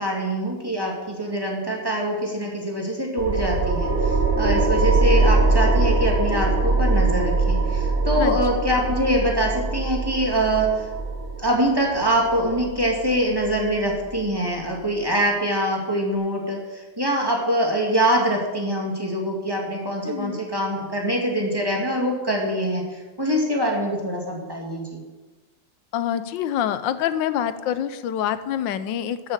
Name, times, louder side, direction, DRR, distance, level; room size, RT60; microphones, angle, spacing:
voice 1, 0.0-10.9 11.4-25.0, right 1 dB, 10° right, -2 dB, 2.0 m, -24 dB
sound 1, 3.2-14.2, right 3 dB, 35° right, 1.1 m, -22 dB
voice 2, 20.0-20.4 25.9-29.3, left 10 dB, 75° left, 12 dB, 1.4 m, -26 dB
12.0 x 6.5 x 7.4 m, 1.2 s
omnidirectional pair, 2.1 m